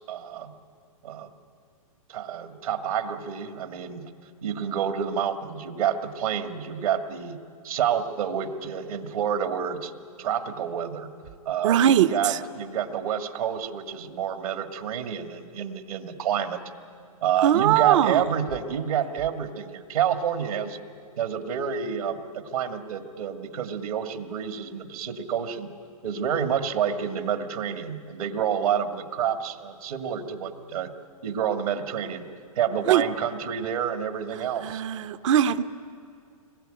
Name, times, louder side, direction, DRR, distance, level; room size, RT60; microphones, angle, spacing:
voice 1, 0.1-0.5 1.0-1.3 2.1-4.0 4.4-7.4 7.6-9.9 10.2-11.1 11.5-16.6 17.2-20.8 21.2-25.7 26.0-30.9 31.2-32.3 32.6-34.8, right 8 dB, 75° right, 6 dB, 2.0 m, -28 dB
voice 2, 11.6-12.4 17.4-18.2 32.9-33.0 34.6-35.6, right 10 dB, 55° right, 10 dB, 0.9 m, -21 dB
25.5 x 21.0 x 9.1 m, 2.4 s
hypercardioid pair, 130°, 19 cm